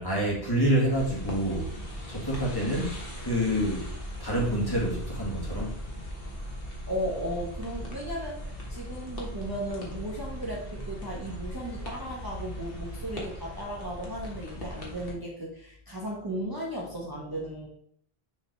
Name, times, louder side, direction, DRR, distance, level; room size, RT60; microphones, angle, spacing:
voice 1, 0.0-1.7 2.1-3.9 4.2-5.7, equal, 20° left, -4 dB, 1.9 m, -27 dB
sound 1, 0.9-15.1, equal, 65° left, 1.7 m, -39 dB
voice 2, 6.9-17.7, right 1 dB, 20° right, -4 dB, 1.1 m, -35 dB
6.5 x 3.9 x 4.6 m, 0.65 s
omnidirectional pair, 1.0 m